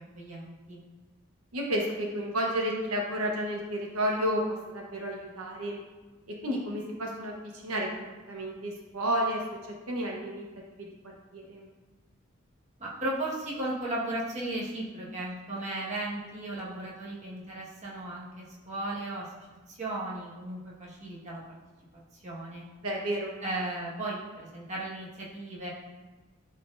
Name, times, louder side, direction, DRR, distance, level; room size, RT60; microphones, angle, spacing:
voice 1, 0.1-0.8 12.8-21.4 22.1-22.7 23.4-25.7, right 1 dB, 35° right, -6 dB, 1.5 m, -36 dB
voice 2, 1.5-4.4 4.7-5.8 6.4-10.4 11.3-11.7 22.8-23.4, equal, 85° right, -1 dB, 1.2 m, -31 dB
11.5 x 4.3 x 2.6 m, 1.3 s
head